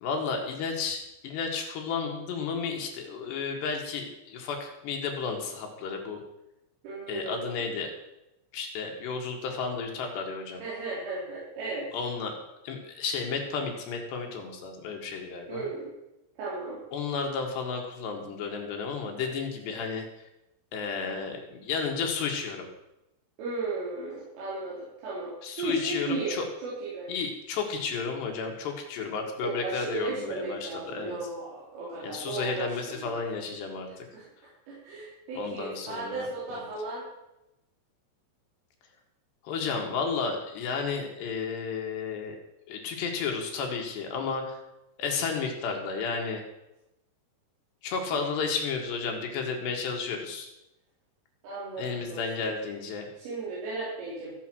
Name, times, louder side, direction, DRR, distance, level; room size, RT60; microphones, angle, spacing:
voice 1, 0.0-6.2 7.1-7.9 8.5-10.6 11.9-12.4 12.6-15.7 16.9-20.1 20.7-22.7 25.4-26.5 27.1-31.2 32.0-34.1 35.4-36.6 39.4-42.4 42.7-44.6 45.0-46.4 47.8-50.5 51.8-53.1, left 5 dB, 65° left, 2 dB, 3.6 m, -32 dB
voice 2, 6.8-7.8 10.6-11.9 15.5-15.9 16.4-16.8 19.2-19.3 19.7-19.8 23.4-25.3 25.6-27.1 29.4-33.2 34.1-34.2 34.7-37.0 51.4-52.5 53.2-54.3, right 3 dB, 80° right, -8 dB, 6.0 m, -35 dB
15.0 x 8.2 x 6.2 m, 0.89 s
omnidirectional pair, 5.7 m